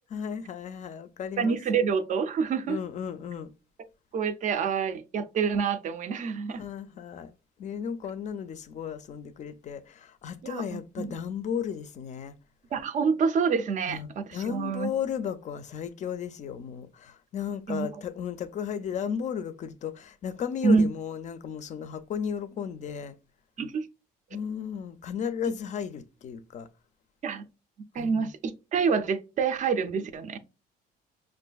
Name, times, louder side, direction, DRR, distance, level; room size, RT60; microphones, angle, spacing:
voice 1, 0.1-1.8 2.7-3.5 6.6-7.3 7.6-12.4 13.9-23.2 24.3-26.7 28.0-28.3, left 7 dB, 45° left, 0.4 m, -34 dB
voice 2, 1.4-2.8 4.1-6.6 10.4-11.2 12.7-14.9 17.7-18.0 20.6-20.9 23.6-23.9 27.2-27.5 27.9-30.4, right 5 dB, 45° right, 0.4 m, -27 dB
5.3 x 2.5 x 2.2 m
cardioid pair, 110°, 17 cm